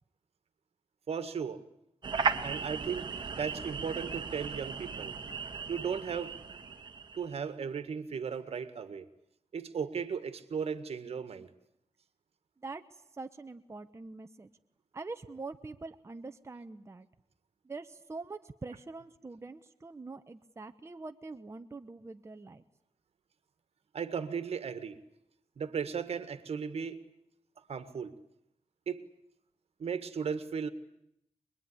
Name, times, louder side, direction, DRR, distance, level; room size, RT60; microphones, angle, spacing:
voice 1, 1.1-1.6 2.4-5.1 5.7-6.4 7.1-9.1 9.5-11.5 23.9-25.0 25.6-27.0 27.7-28.1 28.9-29.0 29.8-30.7, right 6 dB, 65° right, 11 dB, 1.8 m, -36 dB
sound 1, 2.0-7.4, right 5 dB, 45° right, 1.7 m, -36 dB
voice 2, 12.6-14.5 14.9-17.1 17.6-22.6, right 3 dB, 25° right, 8 dB, 0.9 m, -44 dB
24.5 x 22.0 x 9.9 m, 0.79 s
wide cardioid pair, 105°, 11 cm